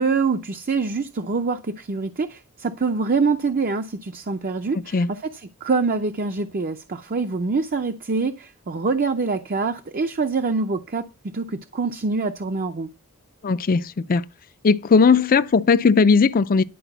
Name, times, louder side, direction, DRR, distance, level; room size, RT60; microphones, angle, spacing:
voice 1, 0.0-12.9, right 4 dB, 40° right, 0.6 m, -25 dB
voice 2, 13.4-14.2 14.6-16.6, left 5 dB, 40° left, 0.5 m, -17 dB
11.0 x 4.9 x 8.0 m
head